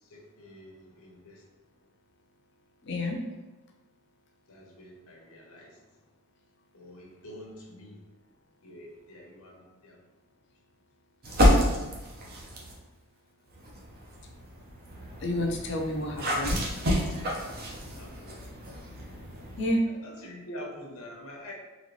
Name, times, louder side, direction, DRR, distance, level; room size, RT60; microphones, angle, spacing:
voice 1, 0.0-1.4 4.5-5.8 6.7-8.0 8.6-10.0 17.8-18.3 19.8-21.5, left 1 dB, 80° left, -1 dB, 0.9 m, -46 dB
voice 2, 2.8-3.2 15.2-16.7 19.6-19.8, left 1 dB, 55° left, 2 dB, 0.6 m, -29 dB
sound 1, 11.2-12.8 13.5-19.7, equal, 45° right, 0.7 m, -29 dB
4.0 x 3.2 x 3.1 m, 1.2 s
head